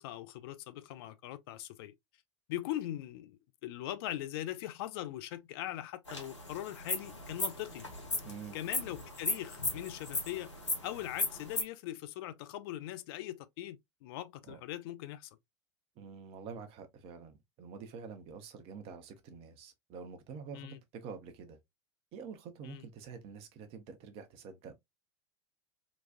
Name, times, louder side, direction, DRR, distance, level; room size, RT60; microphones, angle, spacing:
voice 1, 0.0-1.9 2.5-7.8 8.5-10.5 10.8-15.4 20.5-20.8 22.6-22.8, left 13 dB, 55° left, 0.5 m, -41 dB
sound 1, 6.1-11.6, left 2 dB, 85° left, 1.2 m, -37 dB
voice 2, 8.2-8.6 14.4-14.6 16.0-21.6 22.1-24.7, right 6 dB, 40° right, 0.9 m, -47 dB
4.0 x 2.3 x 2.4 m
figure-of-eight pair, 85°, 15 cm